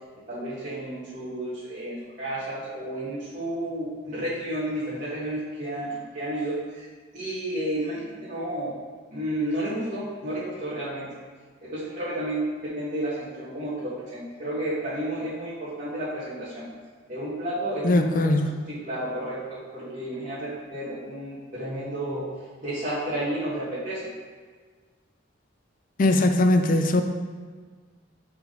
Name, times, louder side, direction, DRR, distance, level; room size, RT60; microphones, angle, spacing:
voice 1, 0.3-6.9 7.1-8.7 9.1-11.1 11.6-16.7 17.1-18.3 18.7-22.2 22.6-24.0, right 1 dB, 40° right, -11 dB, 1.5 m, -31 dB
voice 2, 17.8-18.5 26.0-27.0, left 2 dB, 45° left, 6 dB, 0.4 m, -20 dB
7.2 x 3.7 x 3.8 m, 1.5 s
head